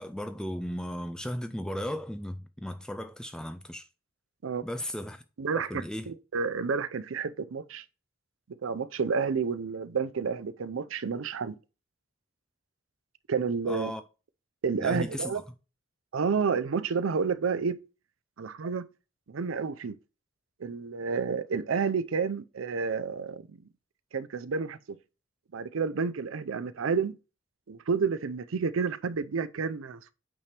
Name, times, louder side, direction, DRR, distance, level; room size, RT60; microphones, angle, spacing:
voice 1, 0.0-3.9 4.6-5.2 5.5-6.1 13.7-14.0 14.7-15.3, equal, 5° left, 0.4 m, -36 dB
voice 2, 5.4-7.8 8.6-11.6 13.3-13.9 14.6-15.4 16.1-17.7 18.4-18.8 19.3-20.0 20.6-23.6 24.1-25.0 25.5-27.1 27.7-30.1, right 5 dB, 90° right, 0.5 m, -30 dB
8.7 x 3.3 x 4.3 m
head